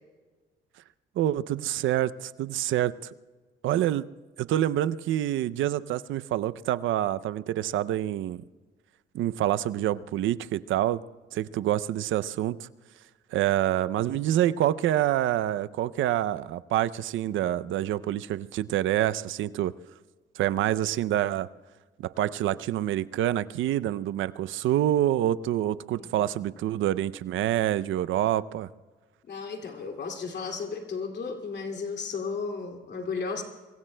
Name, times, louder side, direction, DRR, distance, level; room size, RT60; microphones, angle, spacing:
voice 1, 1.2-3.1 3.6-4.0 4.4-8.4 9.1-11.0 11.3-12.7 13.3-19.7 20.4-21.5 22.0-28.7, right 12 dB, 80° right, 15 dB, 0.5 m, -27 dB
voice 2, 29.3-33.4, left 5 dB, 60° left, 3 dB, 2.4 m, -34 dB
26.0 x 22.5 x 2.2 m, 1.4 s
cardioid pair, 90°, 20 cm